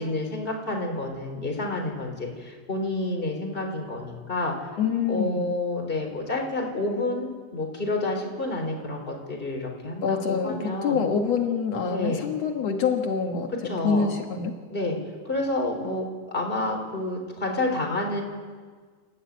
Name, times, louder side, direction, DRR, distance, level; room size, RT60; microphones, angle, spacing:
voice 1, 0.0-4.7 5.1-11.0 11.8-12.2 13.6-14.1 14.7-15.0 15.2-18.2, left 2 dB, 15° left, 1 dB, 3.3 m, -29 dB
voice 2, 4.8-5.5 10.0-14.5, left 6 dB, 90° left, 3 dB, 1.4 m, -26 dB
28.0 x 14.0 x 9.5 m, 1.6 s
omnidirectional pair, 5.4 m